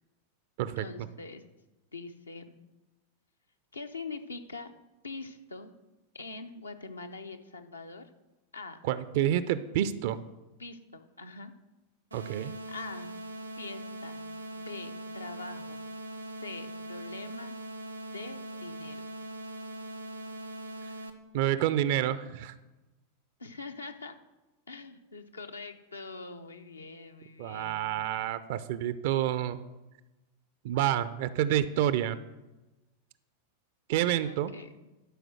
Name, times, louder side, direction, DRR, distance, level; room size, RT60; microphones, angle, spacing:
voice 1, 0.8-1.4 1.9-2.5 3.7-4.7 5.0-5.7 6.1-8.1 8.5-8.8 10.6-11.5 12.7-13.1 13.6-14.2 14.5-15.8 16.4-17.5 18.1-19.0 23.4-24.1 24.7-28.3 34.2-34.7, left 3 dB, 75° left, 6 dB, 0.7 m, -43 dB
voice 2, 8.8-10.2 12.1-12.5 21.3-22.5 27.4-29.6 30.6-32.2 33.9-34.5, right 11 dB, 50° right, 14 dB, 0.4 m, -28 dB
sound 1, 12.1-21.1, right 1 dB, 80° right, 0.8 m, -41 dB
11.0 x 5.0 x 6.3 m, 1.1 s
figure-of-eight pair, 90°, 0 cm